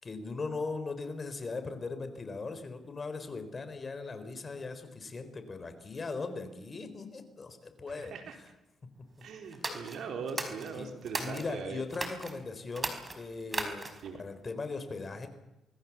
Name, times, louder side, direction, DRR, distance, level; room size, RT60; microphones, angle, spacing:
voice 1, 0.0-8.5 8.8-9.1 10.7-10.9 11.2-15.3, left 3 dB, 35° left, 9 dB, 4.0 m, -39 dB
voice 2, 8.0-8.3 9.2-11.8 14.0-14.2, right 5 dB, 70° right, 5 dB, 4.0 m, -40 dB
sound 1, 9.5-11.5 11.9-12.3 12.7-14.1, right 2 dB, 25° right, 4.8 m, -37 dB
26.0 x 20.5 x 7.4 m, 0.94 s
cardioid pair, 90°, 0 cm